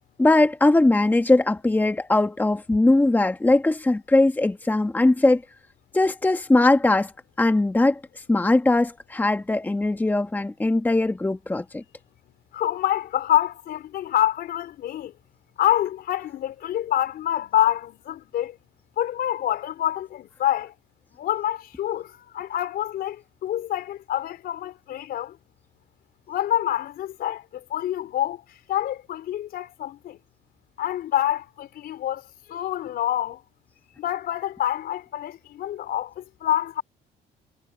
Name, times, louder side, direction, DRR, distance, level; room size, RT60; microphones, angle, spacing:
voice 1, 0.2-5.4 5.9-7.1 7.4-8.0 8.3-11.8, left 2 dB, 10° left, 1.3 m, -20 dB
voice 2, 12.5-15.1 15.6-18.6 19.0-20.7 21.2-25.4 26.3-30.2 30.8-33.4 34.0-36.8, left 12 dB, 65° left, 4.6 m, -27 dB
cardioid pair, 110°, 17 cm